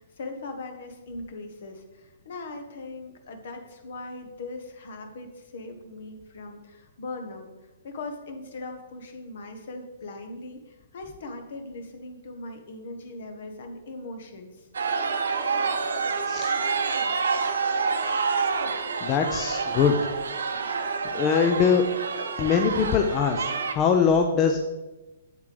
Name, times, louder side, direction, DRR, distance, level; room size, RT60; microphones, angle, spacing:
voice 1, 0.0-7.5 7.8-14.7, left 2 dB, 55° left, 6 dB, 1.2 m, -40 dB
sound 1, 14.7-23.7, right 5 dB, 65° right, 0.7 m, -28 dB
voice 2, 19.0-20.0 21.1-21.9 22.4-24.7, left 6 dB, 30° left, 5 dB, 0.5 m, -22 dB
8.0 x 7.9 x 3.4 m, 1.1 s
figure-of-eight pair, 115°, 0 cm